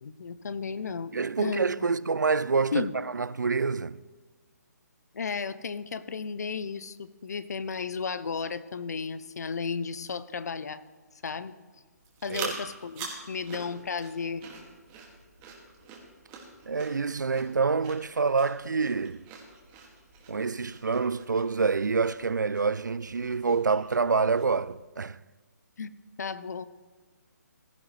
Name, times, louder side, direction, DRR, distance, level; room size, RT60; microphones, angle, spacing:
voice 1, 0.0-1.1 1.4-1.7 2.7-2.9 5.1-10.8 11.2-11.5 12.2-14.4 25.8-25.9 26.2-26.7, left 5 dB, 65° left, 0.7 m, -34 dB
voice 2, 1.1-4.0 12.3-12.6 16.7-19.2 20.3-25.2, right 4 dB, 85° right, 0.4 m, -27 dB
sound 1, 12.0-24.7, right 5 dB, 25° right, 2.2 m, -45 dB
16.0 x 13.0 x 3.3 m
figure-of-eight pair, 145°, 10 cm